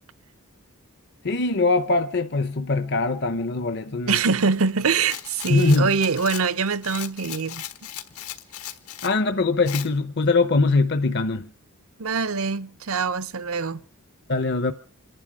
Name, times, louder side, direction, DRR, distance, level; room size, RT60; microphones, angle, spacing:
voice 1, 1.2-4.2 5.5-6.0 9.0-11.5 14.3-14.7, left 3 dB, 50° left, 0.7 m, -22 dB
voice 2, 4.1-7.6 12.0-13.8, right 5 dB, 70° right, 0.7 m, -24 dB
Rattle, 5.0-9.2 9.7-9.9, left 11 dB, 80° left, 1.4 m, -37 dB
27.5 x 11.0 x 4.8 m
head